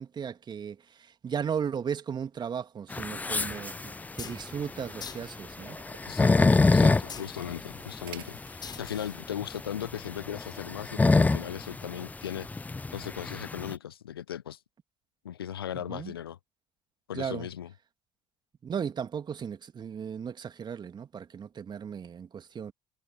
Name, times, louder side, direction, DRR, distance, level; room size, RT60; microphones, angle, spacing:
voice 1, 0.0-5.8 15.9-16.1 17.1-17.5 18.6-22.7, right 7 dB, 35° right, 2.3 m, -36 dB
sound 1, 2.9-13.7, left 3 dB, 15° left, 0.4 m, -26 dB
sound 2, 3.1-4.6 5.6-8.7, right 15 dB, 75° right, 7.3 m, -52 dB
sound 3, 4.0-10.4, left 6 dB, 35° left, 6.8 m, -48 dB
voice 2, 6.1-12.5 12.9-14.6 15.2-16.4 17.1-17.7, left 10 dB, 85° left, 0.5 m, -38 dB
figure-of-eight pair, 55°, 12 cm